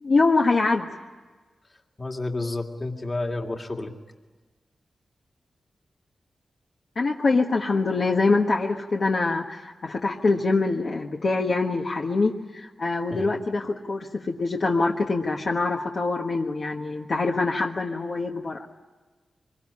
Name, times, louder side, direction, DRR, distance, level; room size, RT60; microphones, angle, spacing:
voice 1, 0.0-0.9 6.9-18.7, left 3 dB, 45° left, 0 dB, 1.4 m, -24 dB
voice 2, 2.0-3.9 13.1-13.3, left 2 dB, 25° left, 3 dB, 2.2 m, -30 dB
25.5 x 22.5 x 9.8 m, 1.3 s
wide cardioid pair, 165°, 0 cm